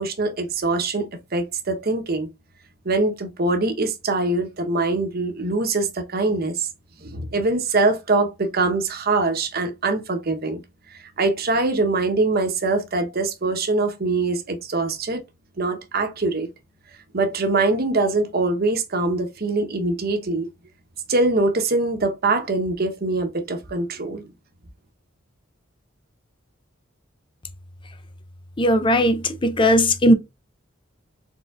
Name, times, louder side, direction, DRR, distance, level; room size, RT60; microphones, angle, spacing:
voice 1, 0.0-2.3 2.8-6.7 7.0-10.6 10.9-15.2 15.6-16.5 17.1-20.5 21.1-24.3, right 3 dB, 50° right, 1.0 m, -23 dB
voice 2, 28.6-30.1, equal, 25° left, 0.6 m, -18 dB
4.5 x 3.8 x 2.4 m
head